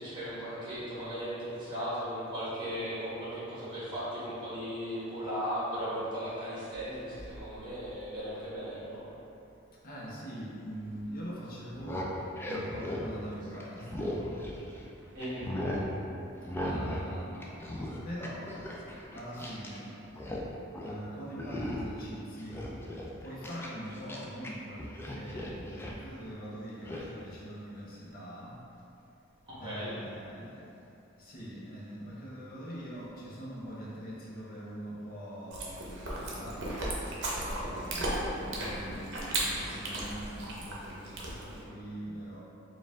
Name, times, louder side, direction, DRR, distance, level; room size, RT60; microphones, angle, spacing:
voice 1, 0.0-9.0 15.1-15.5 29.5-29.9, equal, 25° right, -10 dB, 1.3 m, -37 dB
voice 2, 9.8-12.2 12.5-14.4 16.6-18.8 19.1-20.0 20.8-22.8 23.2-28.6 29.6-30.7 31.2-36.8 37.4-42.4, equal, 45° left, -6 dB, 0.8 m, -43 dB
sound 1, 11.6-14.9 15.2-15.9 16.5-17.1 17.3-19.8 20.0-20.5 20.7-21.0 21.4-22.0 22.4-24.5 24.8-26.0 26.9-27.1, left 1 dB, 10° left, 0.3 m, -37 dB
Chewing mastication, 35.5-41.6, right 1 dB, 60° right, 0.7 m, -35 dB
4.4 x 2.4 x 3.6 m, 2.9 s
head